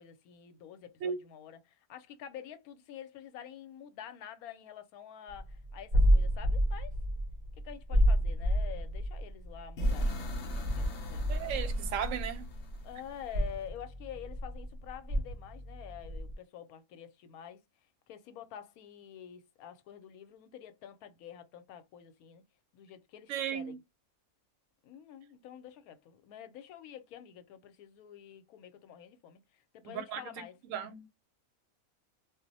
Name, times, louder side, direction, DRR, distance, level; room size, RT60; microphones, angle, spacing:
voice 1, 0.0-6.9 7.5-11.5 12.8-17.6 18.1-22.4 22.7-23.8 24.8-30.6, left 9 dB, 85° left, 1.1 m, -48 dB
sound 1, 5.3-12.9 13.2-16.3, equal, 45° right, 0.8 m, -30 dB
sound 2, 9.8-13.7, left 3 dB, 60° left, 0.8 m, -45 dB
voice 2, 11.3-12.5 23.3-23.8 29.8-31.1, right 8 dB, 70° right, 0.9 m, -36 dB
2.4 x 2.0 x 3.9 m
omnidirectional pair, 1.5 m